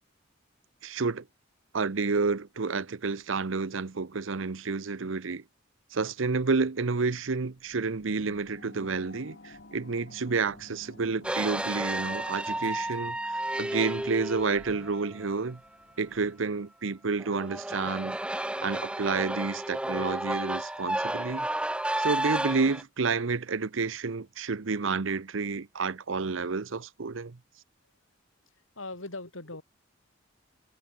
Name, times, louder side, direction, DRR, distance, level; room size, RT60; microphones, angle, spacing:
voice 1, 0.8-1.3 1.7-5.4 5.9-15.6 16.0-18.2 18.6-21.5 22.0-27.4, right 4 dB, 75° right, 0.8 m, -30 dB
sound 1, 6.9-16.4, left 2 dB, 60° left, 2.3 m, -54 dB
sound 2, 11.2-15.3 17.2-22.8, right 1 dB, 5° right, 0.6 m, -32 dB
voice 2, 28.8-29.6, left 2 dB, 85° left, 4.1 m, -39 dB
head